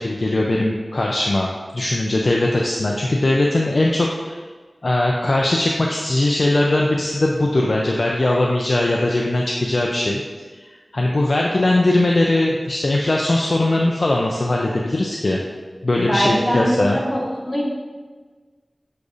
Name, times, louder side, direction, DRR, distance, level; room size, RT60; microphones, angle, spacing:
voice 1, 0.0-1.5 1.7-4.4 4.8-10.2 10.6-10.7 10.9-15.4 15.8-17.0, left 2 dB, 70° left, -1 dB, 0.3 m, -20 dB
voice 2, 16.0-17.6, equal, 20° left, -4 dB, 1.1 m, -22 dB
6.4 x 2.4 x 2.6 m, 1.4 s
wide cardioid pair, 40°, 0 cm